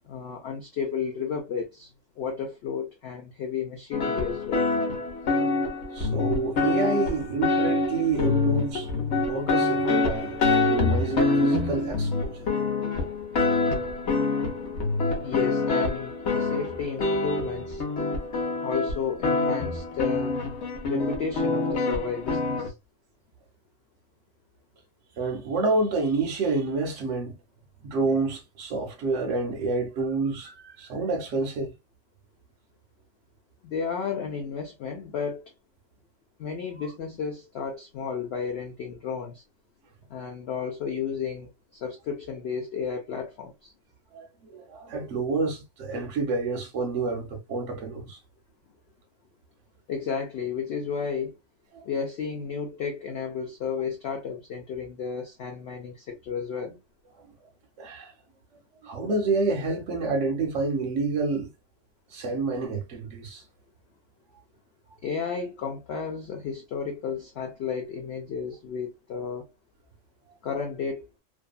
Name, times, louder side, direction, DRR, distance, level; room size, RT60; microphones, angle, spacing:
voice 1, 0.0-4.7 15.2-17.8 18.6-20.4 20.8-22.7 33.6-35.4 36.4-39.4 40.1-43.7 49.9-51.4 51.9-56.8 65.0-69.5 70.4-71.1, left 6 dB, 70° left, 0.6 m, -32 dB
sound 1, 3.9-22.7, left 3 dB, 55° left, 0.9 m, -26 dB
voice 2, 5.9-12.5 25.2-27.4 27.8-31.7 44.1-48.2 51.7-51.8 57.8-58.1 58.8-61.5 62.1-63.4, right 3 dB, 65° right, 0.8 m, -28 dB
2.6 x 2.3 x 2.3 m
omnidirectional pair, 1.6 m